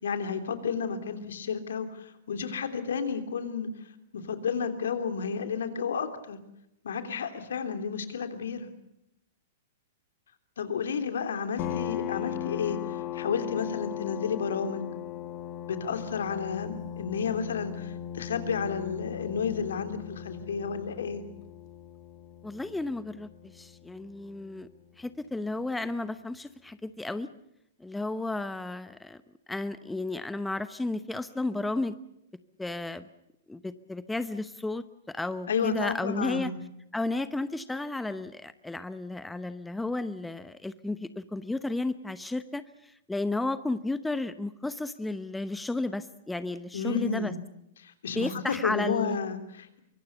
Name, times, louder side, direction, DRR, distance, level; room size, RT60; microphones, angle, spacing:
voice 1, 0.0-3.7 4.1-6.4 6.8-8.7 10.6-14.9 15.7-21.2 35.5-36.6 46.7-47.4 47.8-49.8, left 6 dB, 65° left, 8 dB, 3.1 m, -32 dB
sound 1, 11.6-24.9, left 11 dB, 40° left, 1.3 m, -38 dB
voice 2, 22.4-24.7 25.0-27.3 27.8-29.2 29.5-32.0 32.6-33.1 33.5-36.5 36.9-47.3 48.1-49.2, left 2 dB, 5° left, 13 dB, 0.9 m, -33 dB
24.5 x 24.0 x 7.0 m, 0.81 s
figure-of-eight pair, 105°, 0 cm